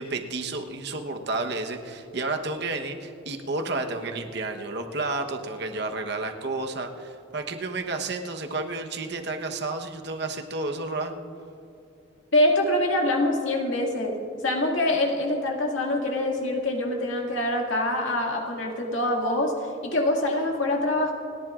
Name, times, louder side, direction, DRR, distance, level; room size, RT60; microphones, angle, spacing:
voice 1, 0.0-11.1, right 3 dB, 55° right, 4 dB, 1.1 m, -31 dB
voice 2, 12.3-14.2 14.4-21.1, left 1 dB, 70° left, 0 dB, 2.1 m, -25 dB
29.0 x 10.5 x 2.5 m, 2.8 s
head